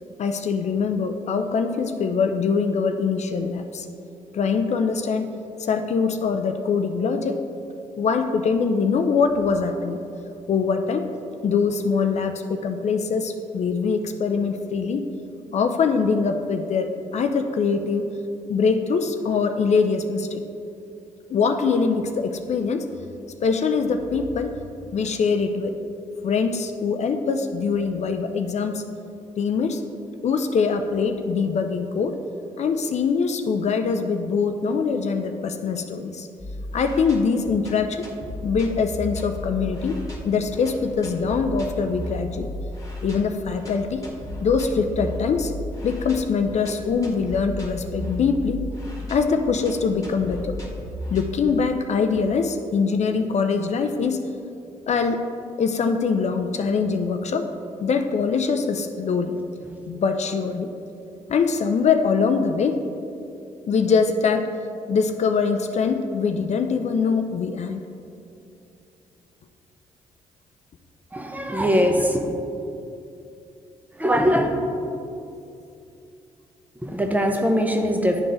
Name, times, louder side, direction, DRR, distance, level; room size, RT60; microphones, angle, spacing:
voice 1, 0.2-3.9 4.3-5.3 5.6-7.4 8.0-10.0 10.5-11.1 11.4-15.1 15.5-18.1 18.5-20.4 21.3-22.8 23.4-24.5 24.9-25.7 26.2-28.8 29.4-29.8 30.2-32.2 32.6-36.3 36.7-38.1 38.4-40.0 40.2-42.5 43.0-44.0 44.4-45.5 45.8-48.6 49.1-50.6 51.1-54.2 54.9-55.2 55.6-57.5 57.8-59.4 59.9-60.7 61.3-62.8 63.7-64.5 64.9-67.8, left 5 dB, 55° left, 6 dB, 0.5 m, -23 dB
sound 1, 36.4-52.0, left 1 dB, 25° left, 1.5 m, -35 dB
voice 2, 71.1-72.3 73.9-74.6 76.8-78.2, equal, 10° right, 3 dB, 0.9 m, -21 dB
9.8 x 3.8 x 3.9 m, 2.6 s
supercardioid pair, 55°, 14 cm